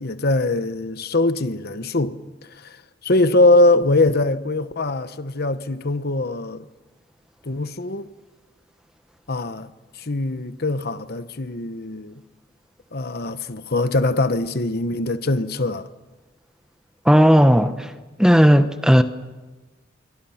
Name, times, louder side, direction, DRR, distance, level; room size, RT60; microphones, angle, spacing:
voice 1, 0.0-2.2 2.6-2.7 3.0-6.7 7.4-8.1 9.3-9.7 10.0-12.1 12.9-15.9, left 2 dB, 50° left, 1.1 m, -22 dB
voice 2, 17.0-17.9 18.2-19.0, equal, 5° right, 0.9 m, -14 dB
30.0 x 25.0 x 5.8 m
head